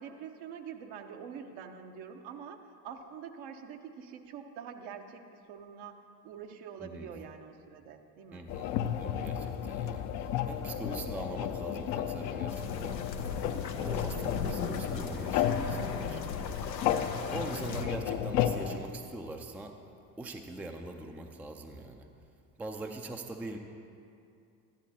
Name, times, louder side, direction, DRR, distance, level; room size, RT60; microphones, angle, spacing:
voice 1, 0.0-6.0 6.2-8.4 17.4-17.6, right 7 dB, 50° right, 6 dB, 0.9 m, -45 dB
voice 2, 6.8-7.2 8.3-13.0 13.3-16.2 17.3-19.7 20.2-22.1 22.6-23.6, right 2 dB, 5° right, 3 dB, 0.5 m, -42 dB
sound 1, 8.5-18.8, left 9 dB, 50° left, 0.6 m, -33 dB
sound 2, 12.5-17.9, left 5 dB, 90° left, 0.6 m, -38 dB
14.0 x 10.5 x 2.8 m, 2.5 s
figure-of-eight pair, 60°, 49 cm